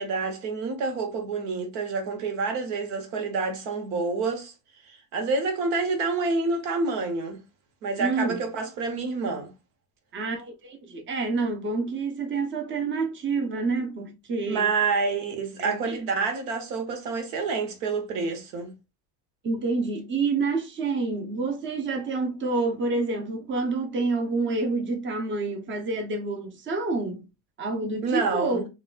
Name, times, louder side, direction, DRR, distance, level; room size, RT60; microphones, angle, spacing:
voice 1, 0.0-4.5 4.8-7.4 7.8-9.5 14.5-18.7 28.0-28.6, right 4 dB, 90° right, 1.1 m, -28 dB
voice 2, 8.0-8.4 10.1-14.7 15.6-16.0 19.4-27.3 27.6-28.7, right 3 dB, 30° right, 0.8 m, -28 dB
4.0 x 2.5 x 2.4 m
cardioid pair, 115°, 36 cm